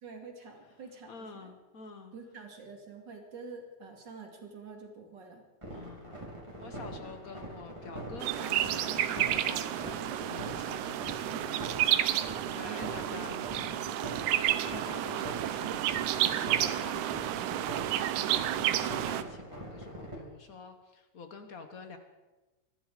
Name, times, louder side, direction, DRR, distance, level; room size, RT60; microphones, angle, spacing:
voice 1, 0.0-1.5 2.1-5.4 12.6-12.9, right 4 dB, 40° right, 2 dB, 2.8 m, -47 dB
voice 2, 1.1-2.1 5.7-6.2 6.6-11.6 12.1-13.9 14.7-22.0, left 5 dB, 75° left, 7 dB, 0.8 m, -47 dB
sound 1, 5.6-20.2, right 1 dB, 10° right, 3.7 m, -43 dB
sound 2, 8.2-19.2, right 12 dB, 85° right, 2.2 m, -31 dB
24.5 x 12.0 x 5.0 m, 1.1 s
omnidirectional pair, 3.3 m